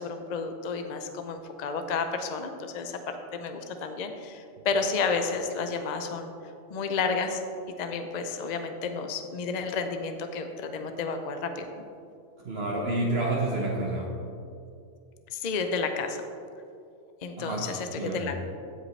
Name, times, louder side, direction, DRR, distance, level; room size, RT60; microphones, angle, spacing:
voice 1, 0.0-6.3 6.7-7.4 7.8-11.7 15.3-16.2 17.2-18.4, left 4 dB, 50° left, 6 dB, 0.5 m, -31 dB
voice 2, 12.4-14.1 17.4-17.7 18.0-18.3, right 2 dB, 55° right, -3 dB, 1.1 m, -29 dB
15.5 x 5.2 x 3.2 m, 2.5 s
omnidirectional pair, 1.4 m